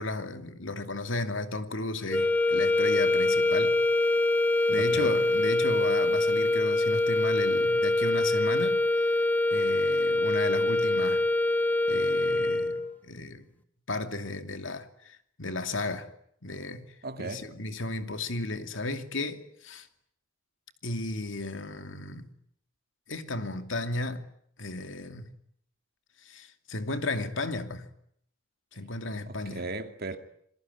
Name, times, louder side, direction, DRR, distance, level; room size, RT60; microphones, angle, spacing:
voice 1, 0.0-3.8 4.7-8.8 9.5-11.2 11.9-13.5 13.9-16.1 16.4-19.9 20.8-22.3 23.1-24.2 24.6-25.3 26.2-27.9 28.7-29.6, left 2 dB, 70° left, 2.6 m, -34 dB
sound 1, 2.1-13.0, left 2 dB, 10° left, 1.2 m, -25 dB
voice 2, 4.7-5.1 17.0-17.5 29.3-30.2, right 2 dB, 50° right, 2.5 m, -37 dB
28.0 x 22.0 x 9.6 m
head